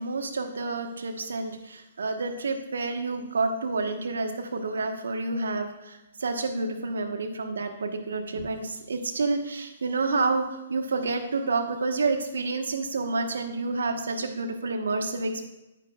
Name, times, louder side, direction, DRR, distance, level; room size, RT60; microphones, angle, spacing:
voice 1, 0.0-15.4, right 3 dB, 75° right, 5 dB, 1.2 m, -29 dB
10.0 x 9.2 x 2.4 m, 0.99 s
hypercardioid pair, 130°, 0 cm